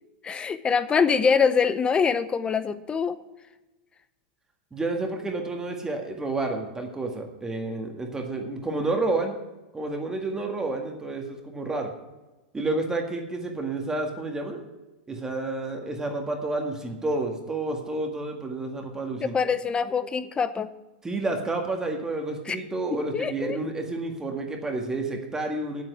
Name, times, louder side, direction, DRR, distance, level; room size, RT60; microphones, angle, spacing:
voice 1, 0.2-3.2 19.2-20.7 22.5-22.6 22.9-23.6, left 6 dB, 20° left, 14 dB, 0.7 m, -24 dB
voice 2, 4.7-9.4 9.7-11.9 12.5-14.6 15.1-19.3 21.0-25.8, right 2 dB, 10° right, 2 dB, 1.8 m, -30 dB
8.9 x 8.2 x 7.9 m, 1.1 s
hypercardioid pair, 125°, 5 cm